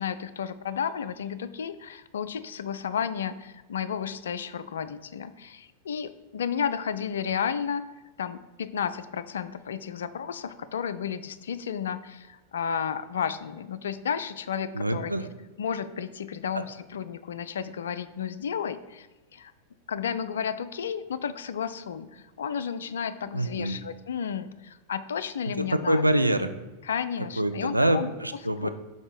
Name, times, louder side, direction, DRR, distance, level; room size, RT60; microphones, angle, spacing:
voice 1, 0.0-7.8 8.2-15.1 15.6-19.1 19.3-19.5 19.9-26.0 26.9-28.1 28.6-28.7, left 7 dB, 65° left, 13 dB, 0.3 m, -32 dB
voice 2, 14.7-15.3 16.5-16.6 23.3-23.8 25.5-26.5 27.2-28.7, right 1 dB, 85° right, 9 dB, 0.3 m, -25 dB
5.2 x 4.1 x 4.7 m, 1.2 s
figure-of-eight pair, 90°, 0 cm